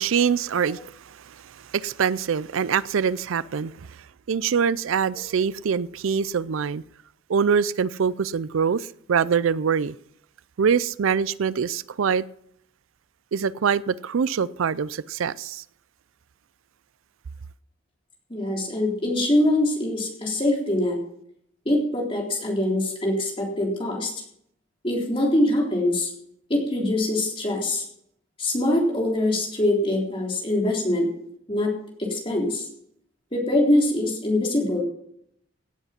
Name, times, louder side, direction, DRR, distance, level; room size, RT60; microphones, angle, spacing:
voice 1, 0.0-6.8 7.3-9.9 10.6-12.2 13.3-15.6, right 6 dB, 75° right, 0.4 m, -24 dB
voice 2, 18.3-21.0 21.7-24.1 24.8-26.1 26.5-27.8 28.4-31.1 31.5-31.7 32.0-32.7 33.3-34.8, left 1 dB, 25° left, 3.8 m, -23 dB
17.5 x 8.1 x 5.9 m
head